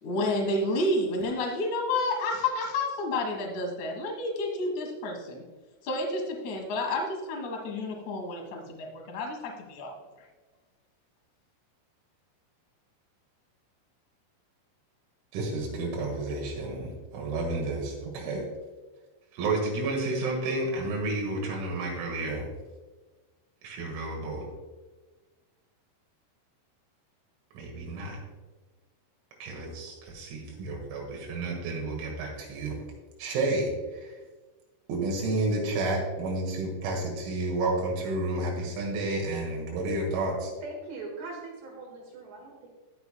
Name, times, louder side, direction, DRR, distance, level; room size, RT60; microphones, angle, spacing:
voice 1, 0.0-5.4 5.8-9.9, left 2 dB, 90° left, 1 dB, 1.6 m, -30 dB
voice 2, 15.3-18.4 19.3-22.5 23.6-24.5 27.5-28.2 29.4-32.8 33.2-34.2 34.9-40.5, right 2 dB, 85° right, -1 dB, 4.5 m, -31 dB
voice 3, 40.6-42.7, right 3 dB, 65° right, 0 dB, 3.3 m, -41 dB
20.5 x 6.9 x 2.2 m, 1.3 s
omnidirectional pair, 6.0 m